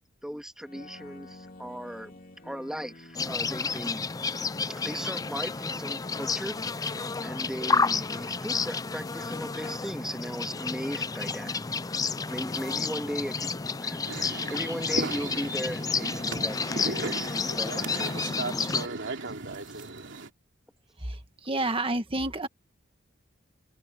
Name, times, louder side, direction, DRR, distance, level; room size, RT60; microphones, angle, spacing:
voice 1, 0.2-2.2 2.4-4.0 4.8-11.6 12.3-13.5 13.8-17.9 18.2-18.9, equal, 5° right, 2.0 m, -37 dB
sound 1, 0.6-14.3, left 2 dB, 45° left, 3.2 m, -51 dB
sound 2, 3.1-18.9, left 4 dB, 20° left, 0.4 m, -31 dB
sound 3, 14.1-20.3, right 3 dB, 65° right, 2.9 m, -36 dB
voice 2, 21.0-22.5, right 2 dB, 25° right, 1.8 m, -30 dB
open air
head